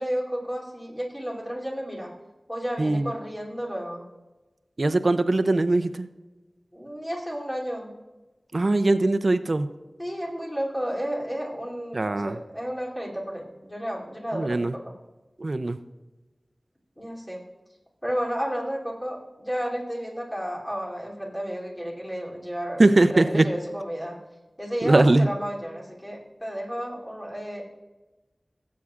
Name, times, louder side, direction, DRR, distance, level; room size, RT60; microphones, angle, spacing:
voice 1, 0.0-2.1 2.5-4.0 6.7-7.9 10.0-14.8 17.0-17.4 18.0-24.2 24.6-27.6, equal, 15° left, -4 dB, 3.1 m, -32 dB
voice 2, 2.8-3.1 4.8-6.1 8.5-9.7 11.9-12.4 14.3-14.7 15.4-15.8 22.8-23.5 24.8-25.3, right 2 dB, 55° right, 10 dB, 0.5 m, -21 dB
17.5 x 8.4 x 2.5 m, 1.1 s
wide cardioid pair, 55°, 0 cm